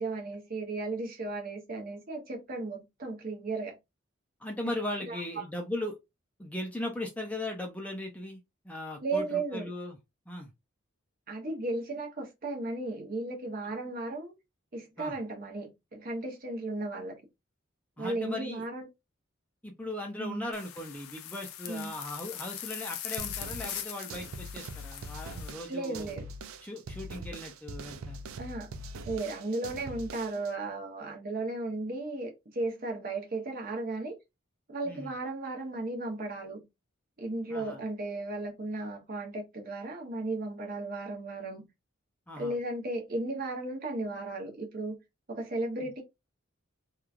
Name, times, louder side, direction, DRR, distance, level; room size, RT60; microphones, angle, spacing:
voice 1, 0.0-3.8 5.0-5.4 9.0-9.7 11.3-14.3 14.7-17.1 18.0-18.9 20.2-20.5 21.7-21.9 25.7-26.3 28.4-28.7 29.0-34.2 34.7-36.6 37.2-41.7 42.4-45.0 45.3-46.0, right 2 dB, 45° right, 0.8 m, -35 dB
voice 2, 4.4-6.0 6.4-10.0 10.3-10.5 15.0-15.1 18.0-18.6 19.6-26.1 26.6-28.2 34.9-35.1 37.5-37.8 42.3-42.5 45.8-45.9, left 1 dB, 5° left, 0.4 m, -38 dB
sound 1, 20.5-25.5, left 11 dB, 90° left, 0.4 m, -41 dB
sound 2, 23.2-30.5, right 2 dB, 80° right, 0.4 m, -42 dB
3.0 x 2.3 x 2.4 m
head